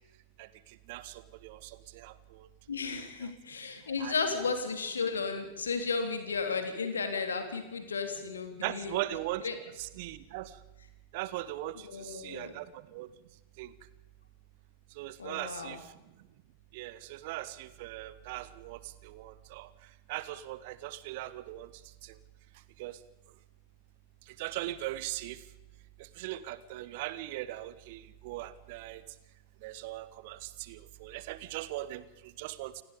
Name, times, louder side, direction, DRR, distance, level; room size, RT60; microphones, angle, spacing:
voice 1, 0.9-2.1 4.0-4.1 8.6-10.5 11.1-12.7 12.9-13.1 13.6-13.7 15.0-15.8 16.7-19.7 20.1-21.7 22.0-22.1 22.8-23.0 24.4-25.4 26.2-29.0 29.6-32.0 32.4-32.7, right 15 dB, 50° right, 16 dB, 1.4 m, -39 dB
voice 2, 2.7-9.0 9.4-9.6 11.9-12.5 15.2-15.8, left 4 dB, 70° left, 6 dB, 3.7 m, -34 dB
29.0 x 18.5 x 5.3 m, 1.0 s
figure-of-eight pair, 90°, 0 cm